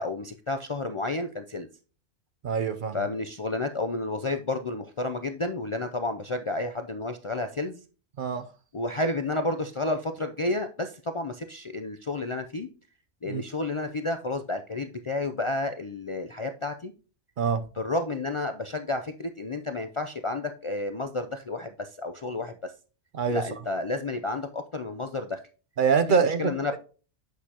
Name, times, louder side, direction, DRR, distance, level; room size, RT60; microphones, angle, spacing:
voice 1, 0.0-1.7 2.9-7.8 8.7-12.7 13.2-16.9 17.8-22.7 23.3-25.4 26.1-26.8, left 2 dB, 45° left, 0.4 m, -31 dB
voice 2, 2.4-3.0 8.2-8.5 13.2-13.4 17.4-17.6 23.1-23.5 25.8-26.5, right 6 dB, 55° right, 0.7 m, -24 dB
8.2 x 6.4 x 2.8 m
omnidirectional pair, 1.1 m